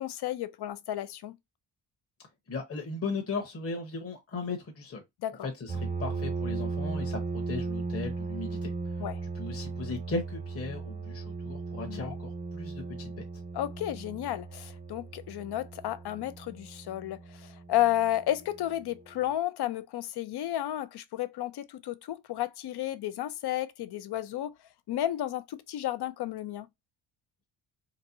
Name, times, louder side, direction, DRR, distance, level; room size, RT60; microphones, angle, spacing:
voice 1, 0.0-1.4 5.2-5.5 9.0-9.2 11.9-12.2 13.5-24.5 24.9-26.7, left 13 dB, 55° left, 0.5 m, -32 dB
voice 2, 2.5-5.0 5.4-8.7 9.3-13.2, left 3 dB, 30° left, 0.9 m, -37 dB
sound 1, 5.7-19.0, right 4 dB, 20° right, 0.4 m, -37 dB
4.0 x 2.2 x 2.7 m
cardioid pair, 70°, 49 cm